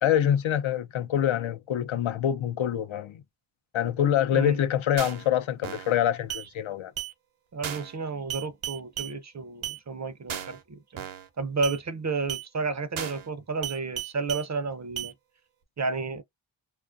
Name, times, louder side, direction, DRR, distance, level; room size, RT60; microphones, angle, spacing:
voice 1, 0.0-3.2 3.7-6.9, left 10 dB, 75° left, 0.5 m, -25 dB
voice 2, 4.3-4.6 7.5-11.0 11.4-15.1 15.8-16.2, right 4 dB, 35° right, 0.5 m, -31 dB
sound 1, 5.0-5.3 5.6-5.9 6.3-6.5 7.0-7.1 7.6-7.9 8.3-9.1 9.6-9.8 10.3-10.6 11.0-11.3 11.6-11.8 12.3-12.5 13.0-13.3 13.6-14.5 15.0-15.1, right 10 dB, 75° right, 0.7 m, -35 dB
2.3 x 2.2 x 2.4 m
wide cardioid pair, 65°, 48 cm